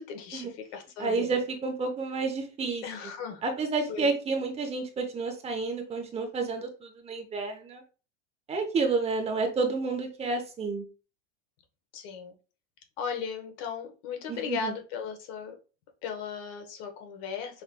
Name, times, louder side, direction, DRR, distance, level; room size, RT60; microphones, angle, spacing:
voice 1, 0.0-1.3 2.8-3.4 3.9-4.1 11.9-12.3 13.0-15.5 16.0-17.6, left 6 dB, 55° left, 5 dB, 1.2 m, -36 dB
voice 2, 1.0-2.9 3.4-7.8 8.5-10.9 14.3-14.7, right 4 dB, 20° right, 5 dB, 0.8 m, -30 dB
5.8 x 3.2 x 2.2 m, 0.34 s
supercardioid pair, 145°, 34 cm